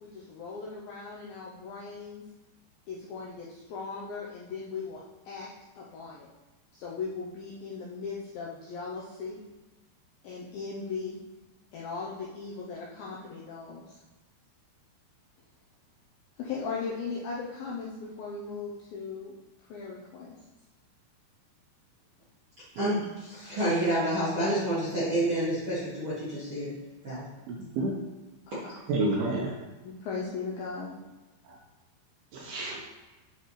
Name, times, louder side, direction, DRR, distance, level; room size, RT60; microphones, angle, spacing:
voice 1, 0.0-2.2 2.9-5.5 5.8-6.3 6.7-9.4 10.2-11.2 11.7-14.0 16.4-19.3 19.7-20.4 29.8-30.9, left 4 dB, 85° left, -4 dB, 2.1 m, -38 dB
voice 2, 22.8-26.7 27.0-27.2, right 1 dB, 65° right, -11 dB, 1.3 m, -28 dB
voice 3, 27.5-28.0 28.9-29.6 31.5-31.6 32.3-32.8, right 2 dB, 85° right, -1 dB, 2.3 m, -29 dB
9.1 x 4.2 x 3.1 m, 1.1 s
omnidirectional pair, 5.1 m